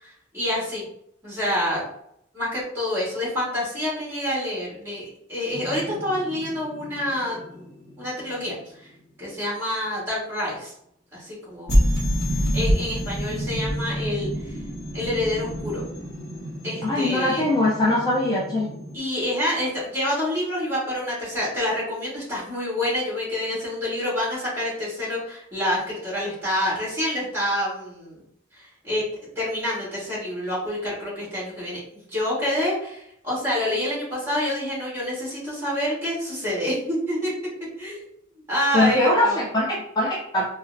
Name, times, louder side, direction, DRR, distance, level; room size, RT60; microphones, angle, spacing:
voice 1, 0.0-0.8 1.2-1.9 2.3-7.4 8.0-8.9 9.2-10.7 11.1-11.8 12.3-14.5 14.9-15.8 16.6-17.4 18.9-28.2 28.8-29.0 29.3-31.8 32.1-37.3 37.8-38.0 38.5-39.4, left 1 dB, 10° right, -7 dB, 1.5 m, -27 dB
sound 1, 5.5-8.6 11.7-19.0, equal, 55° left, 0.7 m, -28 dB
voice 2, 16.8-18.7 38.7-40.4, left 1 dB, 20° left, -5 dB, 0.4 m, -22 dB
3.9 x 2.1 x 2.5 m, 0.72 s
head